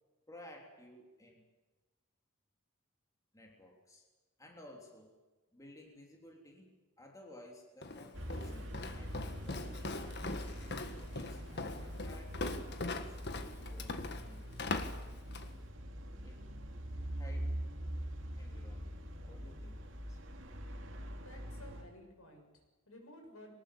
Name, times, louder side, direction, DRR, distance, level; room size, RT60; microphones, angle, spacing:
voice 1, 0.3-1.5 3.3-4.0 4.4-5.1 5.5-10.4 10.9-14.6 16.2-16.5 17.1-17.6 18.4-20.2, left 1 dB, 15° left, 1 dB, 3.3 m, -56 dB
Walk footsteps, 7.8-15.6, left 2 dB, 50° left, 1.7 m, -41 dB
sound 1, 8.1-21.8, equal, 60° right, 2.9 m, -43 dB
voice 2, 21.2-23.5, left 1 dB, 75° left, 3 dB, 6.9 m, -55 dB
23.0 x 19.5 x 8.6 m, 1.2 s
head